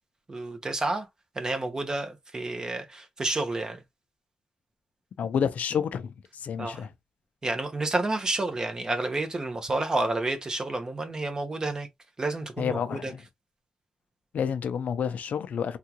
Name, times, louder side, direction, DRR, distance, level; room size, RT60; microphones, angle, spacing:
voice 1, 0.3-1.1 1.4-3.8 6.6-6.8 7.4-11.9 12.2-13.1, right 2 dB, 30° right, 0.7 m, -30 dB
voice 2, 5.2-6.1 6.4-6.9 12.6-13.2 14.3-15.8, left 7 dB, 85° left, 0.4 m, -29 dB
3.6 x 2.3 x 2.8 m
wide cardioid pair, 135°, 3 cm